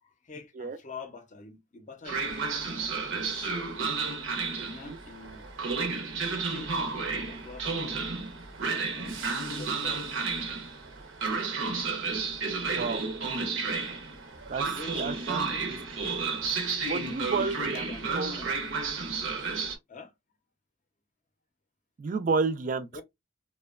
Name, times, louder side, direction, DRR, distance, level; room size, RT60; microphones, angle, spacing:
voice 1, 0.0-2.4 3.1-3.9 4.6-5.5 6.2-8.0 8.9-10.7 11.3-11.4 14.2-14.3 14.6-15.7 16.3-16.8 17.3-18.5 19.9-20.1 22.9-23.0, left 3 dB, 40° left, 0.5 m, -46 dB
Train, 2.0-19.8, right 4 dB, 75° right, 0.7 m, -32 dB
voice 2, 4.6-5.0 12.7-13.0 14.5-14.7 15.0-15.5 16.0-16.1 16.9-18.6 22.0-23.0, right 4 dB, 40° right, 0.3 m, -31 dB
2.8 x 2.2 x 2.3 m
head